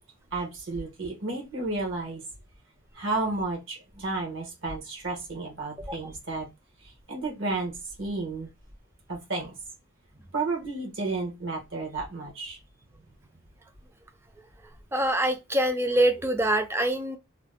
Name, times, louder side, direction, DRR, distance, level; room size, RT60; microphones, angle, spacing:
voice 1, 0.3-2.2 2.9-6.5 6.8-8.5 9.1-9.5 10.3-12.6, right 3 dB, 65° right, 1.0 m, -32 dB
voice 2, 14.9-17.2, right 1 dB, 10° right, 0.4 m, -24 dB
2.7 x 2.0 x 3.4 m
head